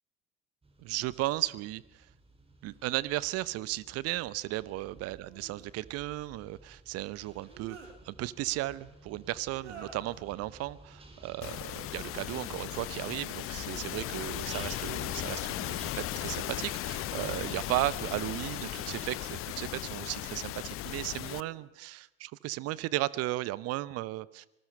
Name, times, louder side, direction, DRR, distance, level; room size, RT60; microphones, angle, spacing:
sound 1, 0.6-19.2, right 2 dB, 15° right, 4.5 m, -53 dB
voice 1, 0.8-1.8 2.6-24.5, right 17 dB, 40° right, 20 dB, 0.9 m, -35 dB
sound 2, 2.7-2.8 5.1-5.7 7.2-8.0 9.5-10.2 11.7-12.2 12.7-13.2 13.6-14.5 15.7-16.4 17.0-19.0 20.1-20.6 21.2-21.7, right 5 dB, 75° right, 3.2 m, -54 dB
sound 3, 11.4-21.4, left 15 dB, 40° left, 0.8 m, -37 dB
27.0 x 19.5 x 5.5 m, 0.89 s
figure-of-eight pair, 70°, 36 cm